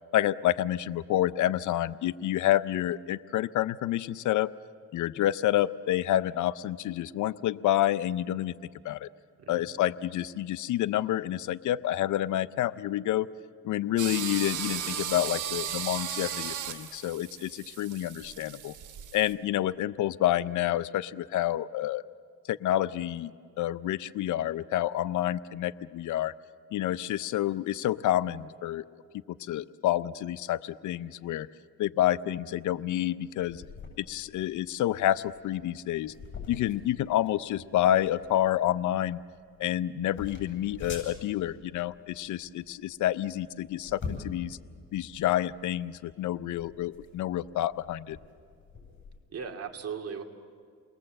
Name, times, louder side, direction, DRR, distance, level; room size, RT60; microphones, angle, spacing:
voice 1, 0.1-4.5 4.9-8.5 8.8-9.1 9.5-13.3 13.6-18.7 19.1-22.0 22.5-23.3 23.6-26.3 26.7-28.8 29.4-31.5 31.8-33.6 34.0-36.1 36.5-39.2 39.6-44.6 44.9-48.2, left 13 dB, 75° left, 16 dB, 0.7 m, -28 dB
sound 1, 14.0-19.3, right 10 dB, 85° right, 2.3 m, -36 dB
sound 2, 33.4-49.2, left 4 dB, 40° left, 7.8 m, -46 dB
voice 2, 49.3-50.2, right 6 dB, 50° right, 3 dB, 2.5 m, -37 dB
29.5 x 21.0 x 7.8 m, 2.1 s
cardioid pair, 90°, 30 cm